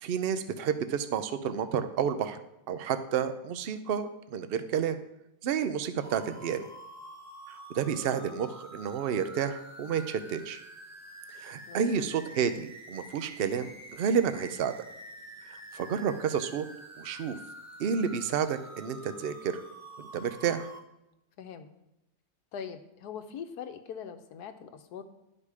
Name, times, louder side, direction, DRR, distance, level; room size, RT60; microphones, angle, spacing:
voice 1, 0.0-2.4 2.7-5.0 5.4-6.7 7.5-10.6 11.3-14.7 15.5-16.6 17.0-17.4 17.8-19.6 20.0-20.7, right 7 dB, 65° right, 10 dB, 0.5 m, -30 dB
sound 1, 6.0-20.8, right 1 dB, 15° right, 0.6 m, -48 dB
voice 2, 11.7-12.1 21.4-21.7 22.5-25.0, left 7 dB, 75° left, 8 dB, 1.3 m, -42 dB
11.5 x 4.9 x 4.8 m, 0.89 s
omnidirectional pair, 1.7 m